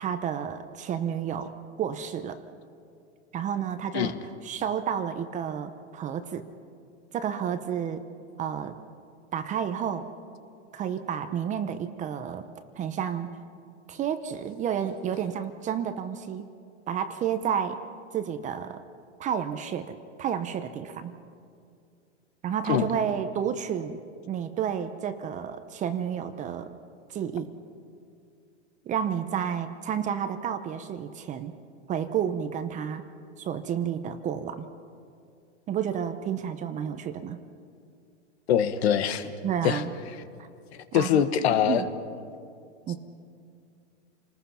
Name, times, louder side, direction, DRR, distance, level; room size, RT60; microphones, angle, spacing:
voice 1, 0.0-1.5 1.8-2.4 3.3-4.1 4.4-6.5 7.1-8.0 8.4-8.8 9.3-10.1 10.7-12.5 12.8-13.3 13.9-16.5 16.9-17.8 18.1-18.8 19.2-21.1 22.4-24.0 24.3-26.7 27.1-27.5 28.9-31.5 31.9-33.0 33.4-34.7 35.7-37.4 39.4-39.9 40.4-40.5 40.9-41.9 42.9-43.0, right 8 dB, 20° right, 10 dB, 0.8 m, -31 dB
voice 2, 38.5-39.3 39.6-39.8 40.7-41.8, left 9 dB, 60° left, 11 dB, 1.5 m, -23 dB
29.5 x 20.0 x 5.8 m, 2.3 s
supercardioid pair, 145°, 35 cm